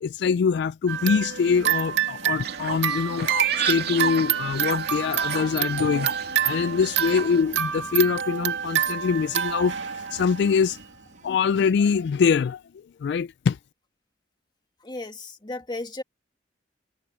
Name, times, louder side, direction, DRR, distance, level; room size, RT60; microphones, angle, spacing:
voice 1, 0.0-9.8 10.1-10.8 11.2-12.6 13.0-13.6, left 6 dB, 60° left, 0.3 m, -24 dB
sound 1, 0.9-10.9, right 9 dB, 80° right, 2.1 m, -28 dB
Fowl, 2.4-7.4, right 6 dB, 55° right, 2.5 m, -32 dB
sound 2, 2.8-11.4, right 2 dB, 40° right, 6.1 m, -56 dB
voice 2, 14.8-16.0, left 2 dB, 25° left, 2.0 m, -34 dB
head